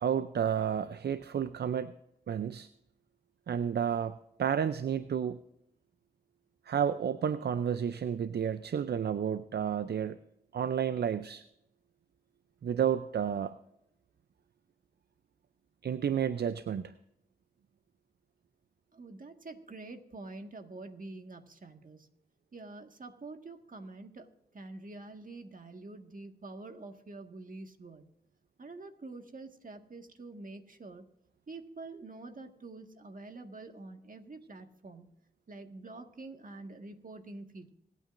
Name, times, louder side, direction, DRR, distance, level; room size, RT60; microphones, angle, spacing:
voice 1, 0.0-1.9 2.3-2.7 3.5-5.4 6.7-10.2 10.5-11.4 12.6-13.5 15.8-16.9, right 8 dB, 75° right, 12 dB, 0.5 m, -31 dB
voice 2, 18.9-22.1 22.5-28.1 28.6-31.0 31.5-35.1 35.5-37.7, right 2 dB, 55° right, 5 dB, 1.7 m, -47 dB
26.5 x 9.2 x 2.6 m, 0.81 s
cardioid pair, 50°, 17 cm